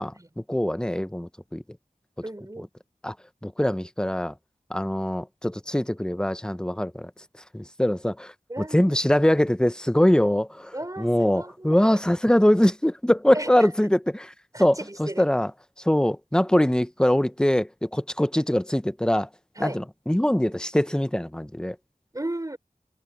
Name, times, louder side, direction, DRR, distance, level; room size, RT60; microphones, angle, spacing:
voice 1, 0.0-1.6 3.0-3.1 3.4-4.3 4.7-7.1 7.5-14.3 14.6-15.5 15.8-19.3 19.6-21.8, left 1 dB, 5° left, 0.8 m, -23 dB
voice 2, 2.2-2.7 8.5-9.0 10.7-12.0 13.3-13.7 14.5-15.2 19.5-19.8 22.1-22.6, right 1 dB, 25° right, 5.1 m, -35 dB
wide cardioid pair, 60°, 14 cm